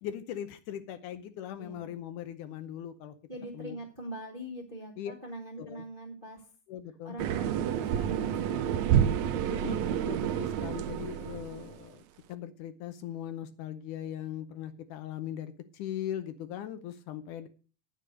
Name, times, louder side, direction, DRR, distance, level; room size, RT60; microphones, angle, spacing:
voice 1, 0.0-3.2 3.5-3.8 5.0-5.1 5.6-5.8 6.7-7.2 9.5-12.0 12.3-17.5, left 10 dB, 75° left, 10 dB, 2.1 m, -39 dB
voice 2, 1.6-1.9 3.3-6.5 7.0-8.9, right 1 dB, 25° right, -1 dB, 1.1 m, -43 dB
sound 1, 7.2-11.8, right 9 dB, 75° right, 1.7 m, -29 dB
9.9 x 6.8 x 6.4 m, 0.37 s
omnidirectional pair, 3.9 m